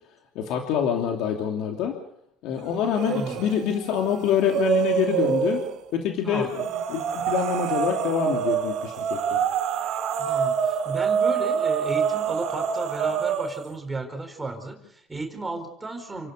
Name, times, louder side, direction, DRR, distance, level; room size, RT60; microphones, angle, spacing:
voice 1, 0.3-1.9 2.4-5.7 5.9-6.6 6.9-7.0 7.3-9.4, left 8 dB, 70° left, 2 dB, 3.0 m, -26 dB
sound 1, 2.9-3.6 3.9-5.7 6.5-13.7, right 7 dB, 60° right, 3.9 m, -26 dB
voice 2, 3.1-3.4 6.2-6.5 10.2-16.3, right 3 dB, 10° right, 3 dB, 4.4 m, -34 dB
29.5 x 11.5 x 8.2 m, 0.74 s
cardioid pair, 125°, 0 cm